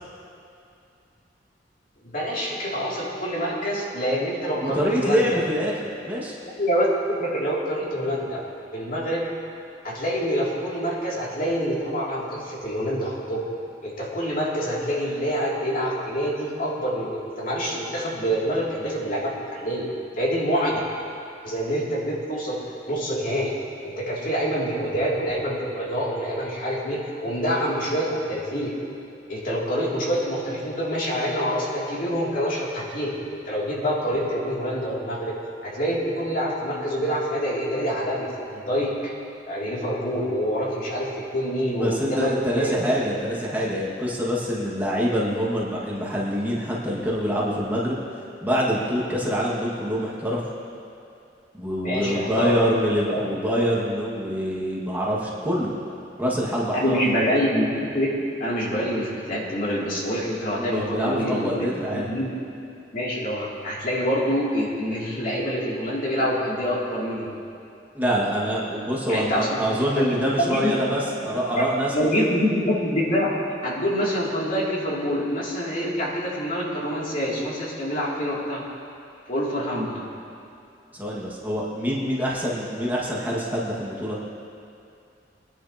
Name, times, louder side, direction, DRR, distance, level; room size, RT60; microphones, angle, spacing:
voice 1, 2.0-5.3 6.4-8.4 8.7-9.3 9.8-13.4 13.8-19.9 20.2-20.8 21.4-23.6 23.8-28.7 29.3-33.2 33.5-35.3 35.6-39.1 39.5-42.8 51.8-52.5 53.1-53.2 56.7-58.1 58.4-62.3 62.9-67.3 69.1-69.6 69.9-70.8 71.5-71.6 71.9-73.3 73.6-78.6 79.3-80.0, equal, 50° left, -5 dB, 2.7 m, -26 dB
voice 2, 4.6-6.4 41.8-48.0 48.4-50.4 51.5-55.7 56.2-57.0 60.6-62.1 67.9-72.2 80.9-84.2, equal, 10° right, -6 dB, 1.8 m, -25 dB
23.0 x 10.5 x 2.9 m, 2.6 s
head